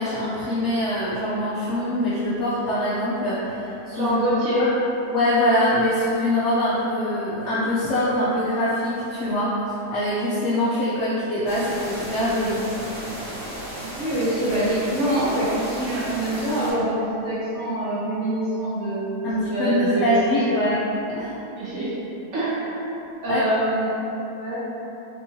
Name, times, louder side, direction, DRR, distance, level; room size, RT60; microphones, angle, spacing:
voice 1, 0.0-4.1 4.6-4.7 5.1-9.5 9.9-12.6 13.0-13.5 19.2-20.8 21.2-21.3 23.3-23.4, left 1 dB, 70° left, -10 dB, 0.6 m, -23 dB
voice 2, 3.9-4.7 14.0-20.4 21.6-21.9 22.3-22.7 23.2-24.6, right 1 dB, 60° right, -10 dB, 0.8 m, -25 dB
sound 1, 11.5-16.7, right 1 dB, 45° right, 0.3 m, -35 dB
3.4 x 2.9 x 2.7 m, 3.0 s
omnidirectional pair, 1.7 m